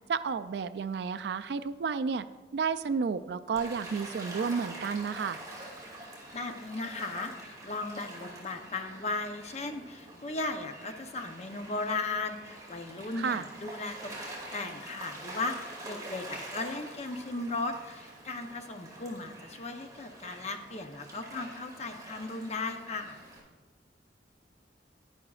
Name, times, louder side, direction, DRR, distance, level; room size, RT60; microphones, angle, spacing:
voice 1, 0.1-2.3 2.5-5.4 13.2-13.4, right 5 dB, 65° right, 12 dB, 0.4 m, -31 dB
Gull seagull / Waves surf, 3.6-23.4, right 1 dB, 20° right, 2.4 m, -46 dB
voice 2, 6.3-14.1 14.5-23.2, left 3 dB, 40° left, 6 dB, 0.7 m, -36 dB
10.5 x 10.5 x 2.4 m, 1.3 s
head